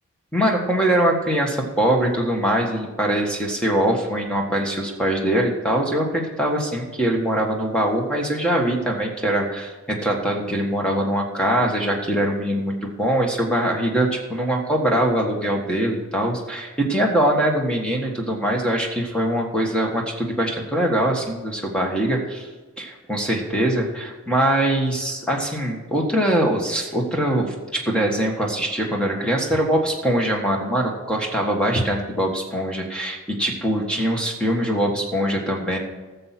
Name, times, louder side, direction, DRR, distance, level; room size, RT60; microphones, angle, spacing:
voice 1, 0.3-22.5 22.8-35.8, right 1 dB, 5° left, 0 dB, 1.6 m, -22 dB
14.5 x 7.1 x 6.0 m, 1.2 s
head